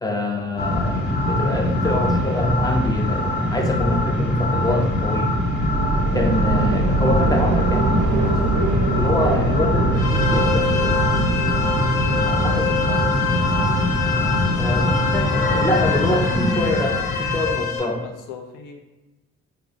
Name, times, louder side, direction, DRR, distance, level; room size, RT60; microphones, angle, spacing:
voice 1, 0.0-5.4 6.1-11.3 12.3-12.6 14.5-18.0, left 2 dB, 15° left, 2 dB, 0.3 m, -25 dB
sound 1, 0.6-17.5, left 1 dB, 35° left, 0.7 m, -22 dB
sound 2, 5.3-15.3, right 3 dB, 80° right, 0.4 m, -24 dB
sound 3, 9.9-17.8, left 6 dB, 60° left, 1.0 m, -26 dB
voice 2, 12.1-13.1 17.8-18.8, left 6 dB, 85° left, 3 dB, 0.5 m, -37 dB
3.6 x 2.1 x 2.4 m, 1.1 s
cardioid pair, 90°, 30 cm